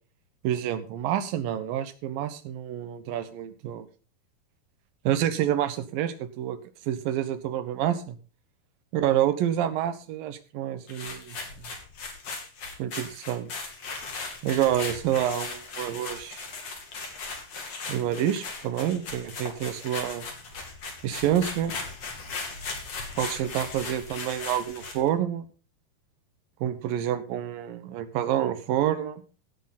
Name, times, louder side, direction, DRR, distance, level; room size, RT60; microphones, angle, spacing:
voice 1, 0.4-3.9 5.0-6.6 6.8-8.2 8.9-11.4 12.8-13.5 14.4-16.4 17.9-20.2 21.0-21.7 23.2-25.5 26.6-29.2, right 11 dB, 70° right, 11 dB, 2.8 m, -28 dB
sound 1, 10.9-25.1, left 4 dB, 45° left, 3.6 m, -38 dB
17.5 x 8.1 x 4.1 m, 0.35 s
omnidirectional pair, 4.5 m